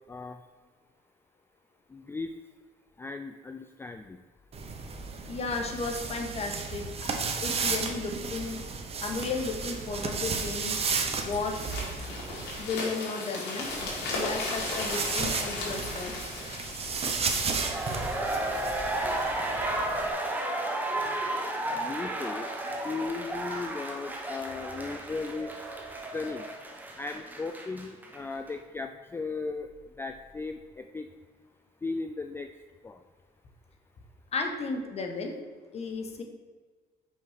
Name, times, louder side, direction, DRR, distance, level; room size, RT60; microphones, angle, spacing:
voice 1, 0.1-0.5 1.9-2.3 3.0-4.2 21.7-31.1 31.8-32.5 32.8-33.1, left 3 dB, 15° left, 6 dB, 0.3 m, -37 dB
sound 1, 4.5-12.6 13.6-20.1, right 5 dB, 35° right, 0.9 m, -34 dB
voice 2, 5.3-8.6 9.0-10.8 11.2-11.6 12.6-13.8 14.1-16.2 34.3-35.4 35.7-36.2, left 4 dB, 40° left, 3 dB, 1.2 m, -34 dB
sound 2, 9.2-21.1 21.7-21.9, left 2 dB, 80° left, 2.2 m, -38 dB
sound 3, 17.4-28.2 28.5-28.6, right 1 dB, 10° right, 1.0 m, -33 dB
5.6 x 5.3 x 4.9 m, 1.4 s
cardioid pair, 110°, 17 cm